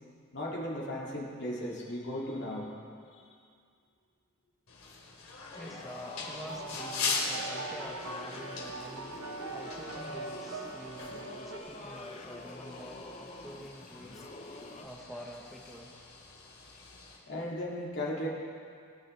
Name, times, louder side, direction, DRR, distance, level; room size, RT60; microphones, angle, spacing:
voice 1, 0.3-2.7 17.3-18.3, left 1 dB, 55° left, -4 dB, 2.2 m, -36 dB
sound 1, 4.7-17.2, left 4 dB, 80° left, 2.5 m, -41 dB
Singing / Musical instrument, 5.5-14.9, left 2 dB, 30° left, 0.8 m, -47 dB
voice 2, 5.5-15.9, equal, ahead, -2 dB, 0.9 m, -47 dB
sound 2, 6.3-11.6, right 3 dB, 80° right, 1.1 m, -42 dB
21.5 x 9.6 x 3.2 m, 2.3 s
head